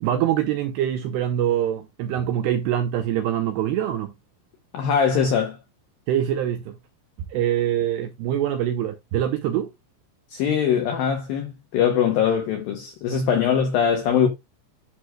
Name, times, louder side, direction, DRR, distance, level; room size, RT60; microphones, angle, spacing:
voice 1, 0.0-4.1 6.1-6.8 7.3-9.7, right 11 dB, 85° right, 2.4 m, -24 dB
voice 2, 4.7-5.6 10.3-14.3, left 7 dB, 80° left, 2.1 m, -22 dB
12.5 x 6.0 x 2.3 m
omnidirectional pair, 5.6 m